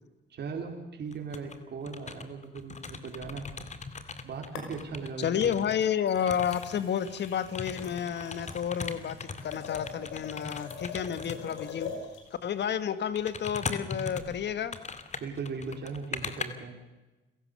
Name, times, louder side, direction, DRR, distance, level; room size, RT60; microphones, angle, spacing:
voice 1, 0.3-3.6 4.2-5.5 15.2-16.8, right 5 dB, 60° right, 2 dB, 4.2 m, -38 dB
sound 1, 1.1-1.6 1.8-5.8 6.1-11.6 12.4-12.7 13.1-16.5, left 4 dB, 35° left, 2.3 m, -40 dB
sound 2, 3.2-4.1 4.5-5.2 5.8-12.3 14.2-14.4, left 5 dB, 90° left, 5.4 m, -44 dB
voice 2, 5.2-11.9 12.4-14.8, left 8 dB, 60° left, 13 dB, 1.7 m, -30 dB
29.5 x 17.0 x 6.8 m, 1.1 s
cardioid pair, 90°, 20 cm